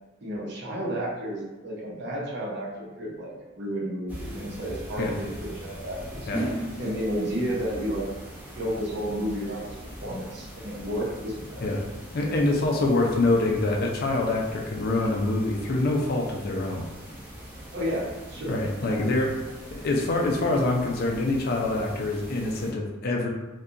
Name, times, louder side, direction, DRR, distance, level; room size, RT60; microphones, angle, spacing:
voice 1, 0.2-6.3 6.8-8.1 8.5-11.6 17.7-18.6, equal, 60° right, -5 dB, 0.7 m, -32 dB
sound 1, 4.1-22.7, equal, 10° right, 0.4 m, -40 dB
voice 2, 12.1-16.9 18.5-19.3 19.8-23.3, left 2 dB, 50° left, 0 dB, 0.4 m, -25 dB
2.7 x 2.2 x 2.5 m, 1.1 s
head